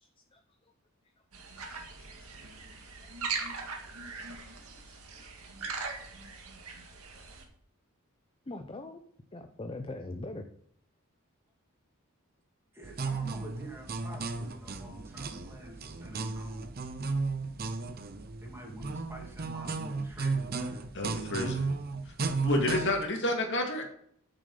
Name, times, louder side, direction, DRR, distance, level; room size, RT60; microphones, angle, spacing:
sound 1, 1.3-7.4, right 4 dB, 90° right, 1.9 m, -40 dB
voice 1, 8.5-9.0 9.3-10.4, left 2 dB, 25° left, 6 dB, 0.7 m, -41 dB
voice 2, 12.7-16.7 18.4-20.9, right 1 dB, 10° right, 0 dB, 2.6 m, -47 dB
sound 2, 12.8-23.0, right 4 dB, 45° right, 0.8 m, -34 dB
voice 3, 20.9-21.7 22.1-22.2 22.4-23.9, left 1 dB, 60° left, 2 dB, 2.1 m, -29 dB
8.8 x 7.0 x 5.4 m, 0.64 s
head